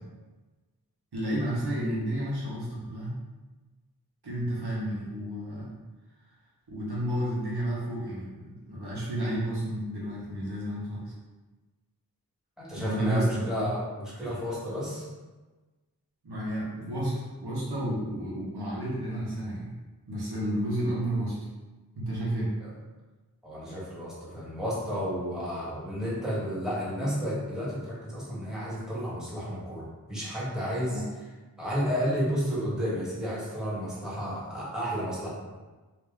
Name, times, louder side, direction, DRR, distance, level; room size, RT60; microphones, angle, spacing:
voice 1, 1.1-3.2 4.2-5.7 6.7-11.1 12.7-13.7 14.2-14.4 16.2-19.7 20.1-21.4 21.9-22.5 30.9-31.0, right 1 dB, 80° right, -6 dB, 1.2 m, -31 dB
voice 2, 12.6-15.0 22.6-22.7 23.4-31.0 31.6-35.3, equal, ahead, -8 dB, 1.4 m, -32 dB
2.9 x 2.8 x 3.5 m, 1.2 s
wide cardioid pair, 65°, 38 cm